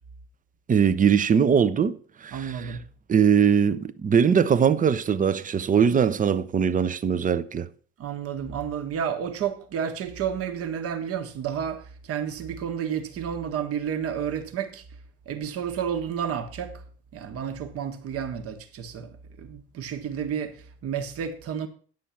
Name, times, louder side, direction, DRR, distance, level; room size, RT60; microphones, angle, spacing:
voice 1, 0.7-2.8 3.1-7.7, right 7 dB, 25° right, 0.7 m, -21 dB
voice 2, 2.3-2.8 8.0-14.8 15.3-16.8 17.1-21.7, right 8 dB, 50° right, 1.3 m, -31 dB
9.2 x 6.4 x 5.7 m
hypercardioid pair, 60°, 30 cm